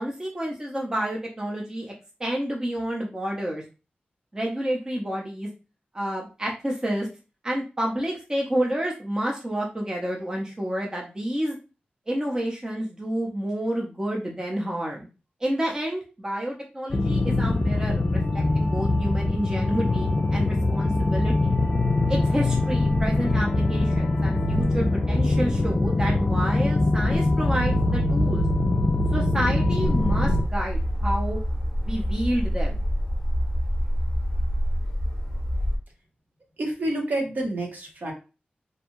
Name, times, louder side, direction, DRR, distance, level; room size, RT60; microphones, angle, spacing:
voice 1, 0.0-1.9 2.2-3.6 4.3-5.5 5.9-7.1 7.4-11.6 12.1-15.1 15.4-21.6 22.1-28.4 29.1-31.4 31.8-32.8, right 1 dB, 20° right, -1 dB, 0.6 m, -29 dB
sound 1, 16.9-30.4, left 2 dB, 40° left, 0.4 m, -23 dB
sound 2, 29.8-35.8, equal, 10° left, 0.8 m, -26 dB
voice 2, 36.6-38.1, right 1 dB, 60° right, 0 dB, 1.0 m, -28 dB
2.6 x 2.3 x 2.9 m, 0.31 s
wide cardioid pair, 95°, 3 cm